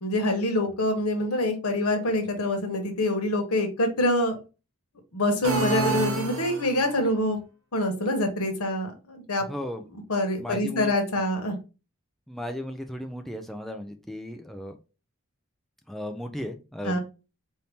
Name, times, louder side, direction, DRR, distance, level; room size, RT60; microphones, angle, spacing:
voice 1, 0.0-4.4 5.1-7.4 7.7-9.4 10.1-11.6 16.8-17.0, left 1 dB, 90° left, 4 dB, 1.1 m, -25 dB
sound 1, 5.4-7.0, right 2 dB, 75° right, 1.0 m, -28 dB
voice 2, 9.5-9.8 10.4-10.9 12.3-14.8 15.9-17.0, equal, ahead, 4 dB, 0.4 m, -35 dB
4.1 x 2.8 x 3.5 m, 0.30 s
head